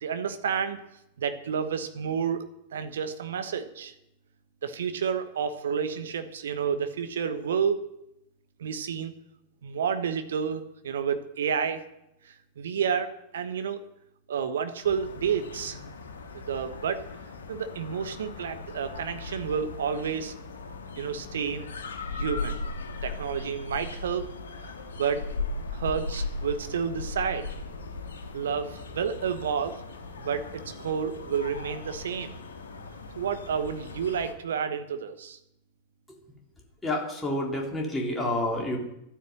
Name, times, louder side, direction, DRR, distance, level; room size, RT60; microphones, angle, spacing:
voice 1, 0.0-0.8 1.2-2.5 2.7-3.9 4.6-7.8 8.6-9.1 9.6-11.8 12.2-13.8 14.3-15.8 16.3-17.0 17.5-20.3 21.0-22.6 23.0-24.3 25.0-25.3 25.7-27.5 28.3-29.8 30.2-32.3 33.2-35.4, right 7 dB, 65° right, 9 dB, 1.2 m, -30 dB
sound 1, 14.8-34.3, left 3 dB, 65° left, 1.8 m, -38 dB
voice 2, 36.8-38.8, left 1 dB, 10° left, -1 dB, 3.6 m, -29 dB
13.0 x 10.0 x 8.0 m, 0.82 s
figure-of-eight pair, 90°, 0 cm